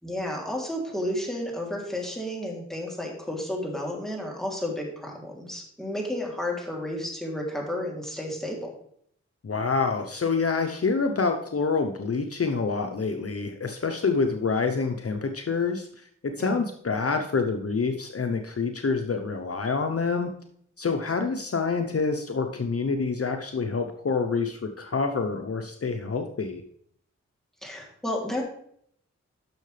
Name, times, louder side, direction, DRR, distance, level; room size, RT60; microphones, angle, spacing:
voice 1, 0.0-8.7 16.4-16.6 21.1-21.2 27.6-28.4, left 1 dB, ahead, -1 dB, 3.1 m, -32 dB
voice 2, 9.4-20.3 20.8-26.6, left 4 dB, 55° left, 5 dB, 0.9 m, -27 dB
10.5 x 6.5 x 3.3 m, 0.66 s
cardioid pair, 45°, 29 cm